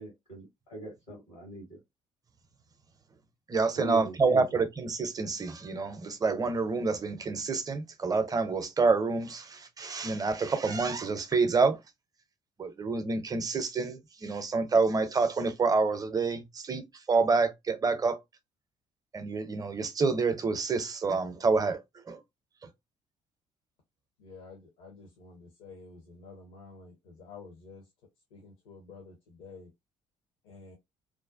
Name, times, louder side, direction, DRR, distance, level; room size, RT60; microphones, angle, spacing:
voice 1, 0.0-1.8 3.7-4.6, right 3 dB, 85° left, 1.2 m, -41 dB
voice 2, 3.5-11.8 12.6-18.2 19.1-21.8 22.1-22.2, right 4 dB, 25° right, 0.5 m, -28 dB
voice 3, 24.2-27.8 28.3-29.7 30.4-30.8, left 4 dB, 65° left, 0.7 m, -50 dB
2.5 x 2.1 x 2.4 m
figure-of-eight pair, 50°, 16 cm